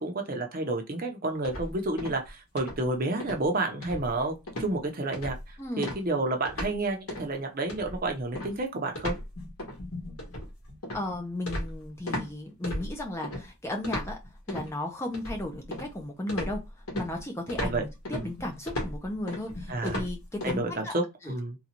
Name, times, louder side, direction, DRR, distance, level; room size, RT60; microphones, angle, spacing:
voice 1, 0.0-9.1 17.6-17.8 18.1-18.3 19.7-20.0 20.4-21.6, right 2 dB, 40° right, 0.6 m, -30 dB
sound 1, 1.4-2.3 2.6-2.9 3.2-3.4 3.8-4.2 4.5-4.7 5.1-5.5 5.8-6.8 7.1-7.3 7.7-12.3 12.6-13.4 13.8-14.7 15.1-16.0 16.3-20.6, left 1 dB, 75° left, 1.4 m, -36 dB
voice 2, 5.6-5.9 10.9-14.2 14.5-16.6 16.9-20.9 21.2-21.3, left 1 dB, 10° left, 0.5 m, -35 dB
3.8 x 2.3 x 2.9 m
head